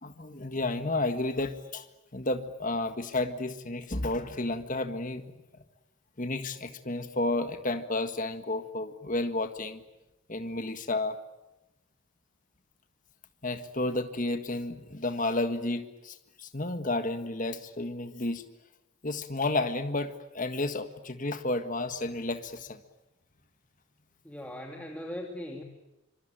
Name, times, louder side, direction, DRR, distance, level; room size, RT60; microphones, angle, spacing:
voice 1, 0.0-1.9 2.1-5.2 6.2-9.8 10.3-11.2 13.4-18.4 19.0-22.8, left 2 dB, 35° left, 8 dB, 1.7 m, -31 dB
voice 2, 24.2-25.6, left 1 dB, 5° left, 1 dB, 2.4 m, -39 dB
26.0 x 25.0 x 9.0 m, 0.96 s
head